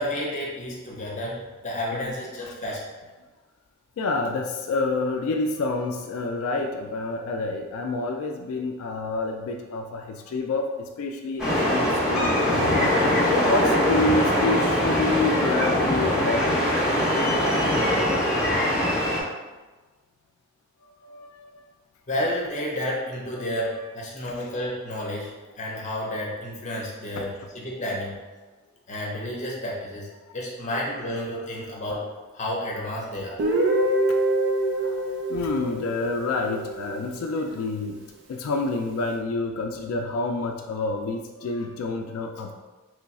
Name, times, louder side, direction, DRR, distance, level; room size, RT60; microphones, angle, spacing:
voice 1, 0.0-2.8 22.1-28.2 28.9-32.1 32.3-33.4, left 1 dB, 35° left, -3 dB, 0.7 m, -31 dB
voice 2, 4.0-16.6 21.0-21.6 23.3-23.6 24.2-24.3 27.2-27.3 30.7-30.8 32.8-32.9 34.1-34.2 34.8-38.0 38.3-42.5, left 3 dB, 80° left, 3 dB, 0.3 m, -28 dB
sound 1, 11.4-19.2, left 1 dB, ahead, 0.9 m, -22 dB
Guitar, 33.4-37.2, right 1 dB, 55° right, 0.5 m, -25 dB
3.1 x 2.3 x 4.0 m, 1.2 s
head